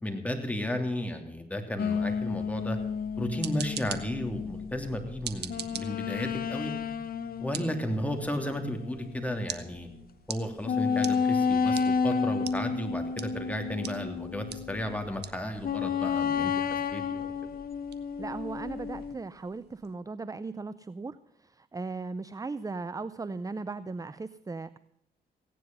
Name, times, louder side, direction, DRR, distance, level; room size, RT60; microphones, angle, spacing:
voice 1, 0.0-2.8 3.2-6.7 7.4-9.9 10.3-16.6 16.9-17.3, left 1 dB, 10° left, 4 dB, 3.1 m, -33 dB
sound 1, 1.8-9.5 10.0-10.1 10.6-15.1 15.6-19.2, left 6 dB, 60° left, 1.0 m, -31 dB
sound 2, 3.1-19.9, right 9 dB, 70° right, 1.1 m, -46 dB
voice 2, 18.2-24.8, right 3 dB, 20° right, 15 dB, 0.5 m, -37 dB
16.5 x 10.0 x 5.5 m, 0.77 s
cardioid pair, 65°, 17 cm